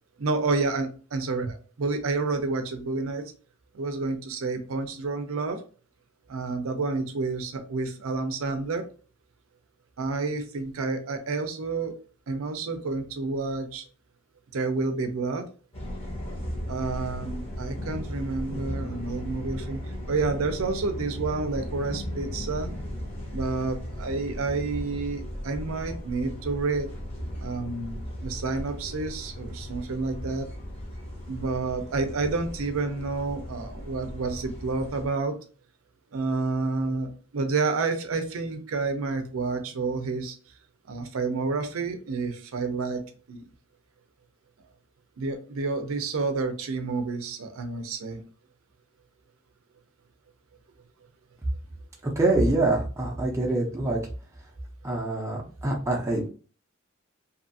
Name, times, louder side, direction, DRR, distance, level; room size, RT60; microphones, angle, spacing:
voice 1, 0.2-3.2 3.7-5.6 6.3-8.9 10.0-11.9 12.3-13.8 14.5-15.4 16.7-19.8 20.1-22.7 23.3-26.9 27.4-30.5 31.3-35.3 36.1-40.4 40.9-43.0 43.3-43.5 45.2-48.2, right 3 dB, 70° right, 7 dB, 0.5 m, -29 dB
sound 1, 15.7-35.1, equal, 25° left, 0.8 m, -36 dB
voice 2, 52.0-54.0 54.8-56.3, right 2 dB, 15° right, -2 dB, 0.5 m, -25 dB
2.7 x 2.5 x 2.6 m, 0.39 s
head